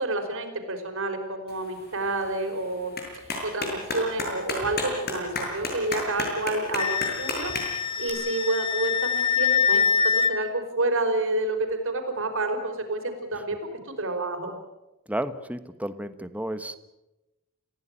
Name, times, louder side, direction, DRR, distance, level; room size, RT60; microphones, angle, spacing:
voice 1, 0.0-2.9 3.4-13.6 13.8-14.5, right 2 dB, 65° right, 5 dB, 4.8 m, -29 dB
Clapping, 1.5-8.1, left 2 dB, 50° left, 7.4 m, -34 dB
Wind instrument woodwind instrument, 6.8-10.3, left 6 dB, 25° left, 1.7 m, -24 dB
voice 2, 15.1-16.8, right 1 dB, 5° right, 11 dB, 1.3 m, -32 dB
29.0 x 16.0 x 8.9 m, 1.0 s
head